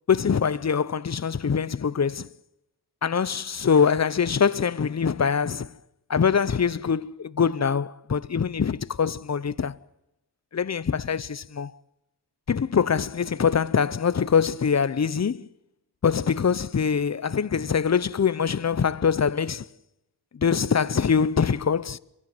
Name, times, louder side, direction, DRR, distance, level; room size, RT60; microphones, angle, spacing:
voice 1, 0.1-2.3 3.0-5.7 6.1-9.8 10.5-11.7 12.5-15.5 16.0-19.7 20.4-22.0, left 6 dB, 40° left, 0.7 m, -23 dB
24.0 x 16.0 x 7.7 m
wide cardioid pair, 65°, 43 cm